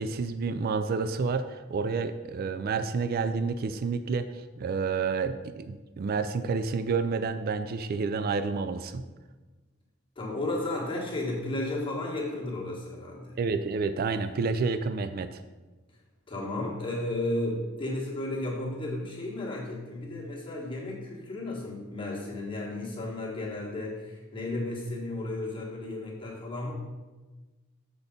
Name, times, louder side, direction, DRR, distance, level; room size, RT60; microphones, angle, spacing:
voice 1, 0.0-9.1 13.4-15.4, right 4 dB, 50° right, 10 dB, 0.3 m, -29 dB
voice 2, 10.1-13.4 16.3-26.7, left 2 dB, 25° left, -4 dB, 1.5 m, -33 dB
7.1 x 4.2 x 5.1 m, 1.2 s
head